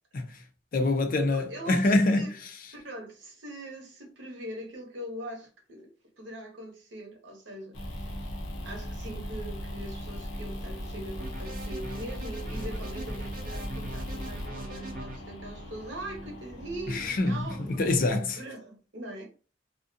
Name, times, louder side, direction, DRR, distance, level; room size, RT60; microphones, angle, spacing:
voice 1, 0.7-2.5 16.9-18.4, left 2 dB, 50° left, 0.5 m, -25 dB
voice 2, 1.3-2.3 2.7-5.9 6.2-8.2 8.6-17.8 18.4-19.3, right 1 dB, 80° right, 0.9 m, -42 dB
sound 1, 7.7-18.2, equal, 90° left, 0.7 m, -38 dB
sound 2, 11.2-15.2, right 2 dB, 50° right, 0.5 m, -42 dB
2.4 x 2.1 x 2.6 m
head